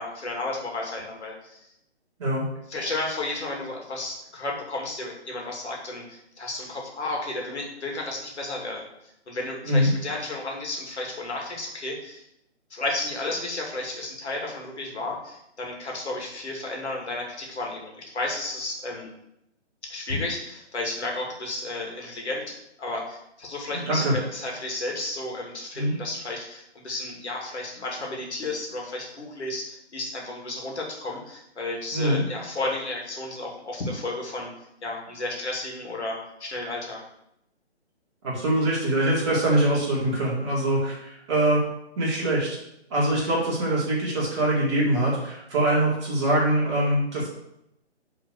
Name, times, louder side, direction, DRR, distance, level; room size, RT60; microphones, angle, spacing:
voice 1, 0.0-1.7 2.7-12.3 12.7-19.1 19.8-34.5 34.8-37.0, left 2 dB, 75° left, -1 dB, 2.6 m, -33 dB
voice 2, 31.9-32.2 38.2-41.6 42.0-42.6 42.9-47.3, right 1 dB, 25° right, -6 dB, 2.2 m, -23 dB
6.2 x 4.0 x 6.3 m, 0.81 s
hypercardioid pair, 165°, 34 cm